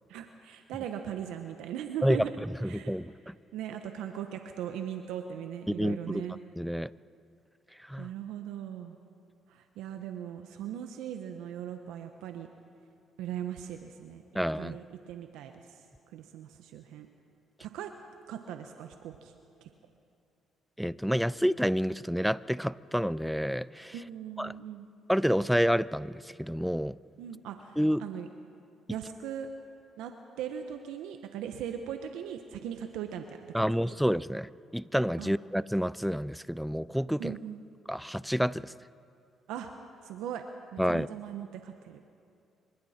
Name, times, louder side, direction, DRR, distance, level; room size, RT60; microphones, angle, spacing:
voice 1, 0.1-2.3 2.7-2.9 3.5-6.4 8.0-9.0 9.5-12.5 13.2-15.8 16.1-17.1 17.6-17.9 18.3-19.3 19.6-19.7 23.9-24.9 27.2-28.3 28.9-29.5 30.0-33.7 35.2-35.3 37.2-37.6 39.5-39.7 40.0-40.5 40.7-42.1, right 9 dB, 80° right, 6 dB, 1.0 m, -39 dB
voice 2, 2.0-3.4 5.7-6.3 6.6-6.9 7.8-8.1 14.3-14.8 20.8-24.0 24.4-24.6 25.1-27.0 27.8-28.0 33.5-37.4 37.9-38.7 40.8-41.1, equal, ahead, 19 dB, 0.4 m, -29 dB
26.5 x 23.5 x 4.4 m, 2.5 s
supercardioid pair, 70°, 0 cm